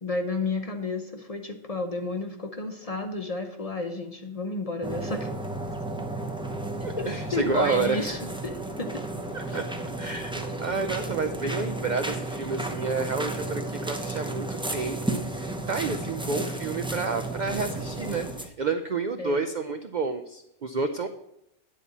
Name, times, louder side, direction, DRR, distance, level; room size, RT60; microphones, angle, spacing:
voice 1, 0.0-5.3 7.0-9.0 9.5-9.6 19.2-19.5, left 3 dB, 35° left, 5 dB, 0.7 m, -32 dB
sound 1, 4.8-18.5, right 2 dB, 5° right, 0.5 m, -33 dB
voice 2, 6.8-8.2 9.3-9.7 10.0-21.1, right 4 dB, 60° right, 7 dB, 0.5 m, -30 dB
9.8 x 4.1 x 7.2 m, 0.84 s
omnidirectional pair, 1.3 m